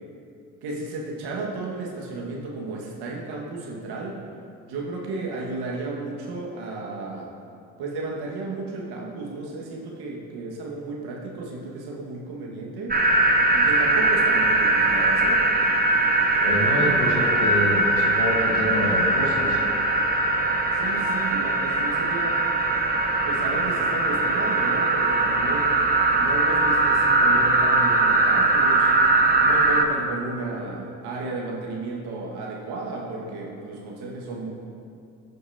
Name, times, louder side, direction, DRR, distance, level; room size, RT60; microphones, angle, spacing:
voice 1, 0.6-4.2 4.7-7.3 7.8-13.0 13.5-15.5 20.7-22.4 23.2-25.8 26.2-28.9 29.4-34.5, right 3 dB, 65° right, -2 dB, 1.9 m, -33 dB
sound 1, 12.9-29.8, right 2 dB, 20° right, 1.0 m, -21 dB
voice 2, 16.4-19.6, left 1 dB, 85° left, -2 dB, 1.8 m, -27 dB
15.0 x 6.5 x 2.9 m, 2.5 s
hypercardioid pair, 60°, 42 cm